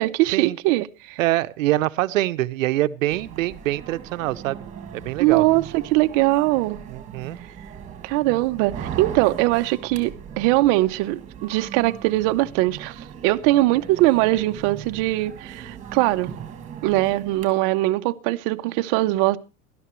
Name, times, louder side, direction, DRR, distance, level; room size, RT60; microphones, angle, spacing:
voice 1, 0.0-1.2 5.2-6.8 8.0-16.3 16.8-19.4, right 18 dB, 35° right, 0.7 m, -21 dB
voice 2, 1.2-4.6 4.9-5.4 6.9-7.4, right 16 dB, 80° right, 0.8 m, -24 dB
sound 1, 3.1-17.5, right 8 dB, 20° right, 1.9 m, -39 dB
18.0 x 12.0 x 3.1 m
supercardioid pair, 155°, 39 cm